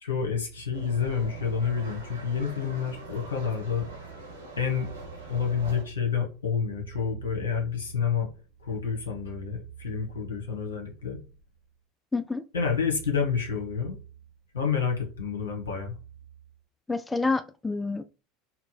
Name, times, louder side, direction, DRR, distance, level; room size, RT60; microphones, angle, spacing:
voice 1, 0.0-3.9 4.6-4.9 5.3-8.3 8.6-11.2 12.5-14.0 14.5-15.9, left 6 dB, 75° left, 1.2 m, -29 dB
sound 1, 0.7-5.8, right 2 dB, 85° right, 1.3 m, -43 dB
voice 2, 12.1-12.4 16.9-18.0, left 3 dB, 10° left, 0.3 m, -28 dB
4.2 x 2.1 x 4.2 m
figure-of-eight pair, 75°, 0 cm